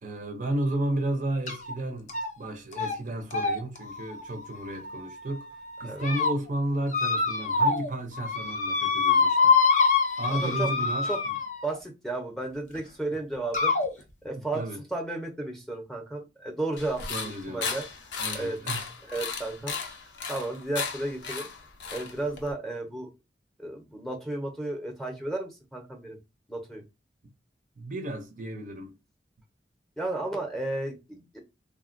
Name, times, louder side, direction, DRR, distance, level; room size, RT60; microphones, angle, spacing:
voice 1, 0.0-5.5 5.8-9.6 10.2-11.4 14.3-14.8 17.1-17.7 18.2-18.9 27.8-28.9, right 1 dB, 45° right, 0.5 m, -33 dB
sound 1, 1.5-1.7 2.1-2.5 2.7-2.9 3.3-5.2 5.8-6.3 6.9-7.9 8.2-11.8 12.7-12.8 13.5-13.9, left 4 dB, 45° left, 0.6 m, -25 dB
voice 2, 10.3-10.7 11.0-11.2 11.6-13.8 14.2-14.6 14.9-17.9 18.3-18.6 19.1-19.8 20.3-21.5 21.9-23.1 23.6-26.2 26.5-26.8 30.0-31.4, right 2 dB, ahead, 0.6 m, -33 dB
sound 2, 16.8-22.5, left 5 dB, 85° left, 0.6 m, -35 dB
3.4 x 2.1 x 2.5 m
head